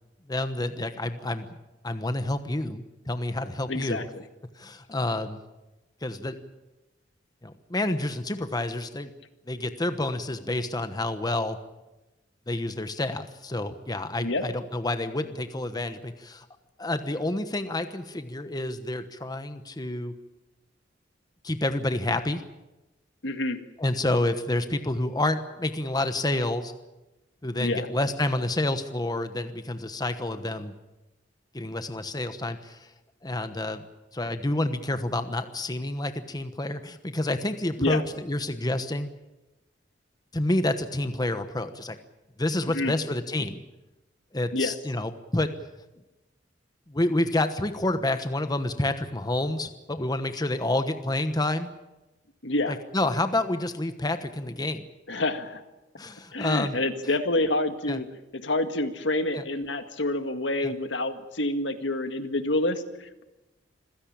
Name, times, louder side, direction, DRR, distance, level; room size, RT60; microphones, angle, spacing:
voice 1, 0.3-1.5 1.8-4.1 4.6-5.4 6.0-6.3 7.4-9.1 9.5-11.6 12.5-16.5 16.8-20.1 21.4-22.4 23.8-26.7 27.4-30.7 31.5-32.9 33.2-33.8 34.1-39.1 40.3-42.0 42.4-43.6 44.3-45.5 46.9-51.7 52.7-54.9 56.0-56.8 57.9-58.0 59.3-59.4 60.6-60.7, left 1 dB, 20° left, 9 dB, 1.1 m, -29 dB
voice 2, 3.7-4.2 14.2-14.4 23.2-23.6 27.6-27.9 37.8-38.0 42.7-43.0 44.5-44.7 52.4-52.8 55.1-55.6 56.3-58.1 58.3-63.2, left 2 dB, 80° left, 8 dB, 1.9 m, -28 dB
26.0 x 16.5 x 8.8 m, 1.0 s
head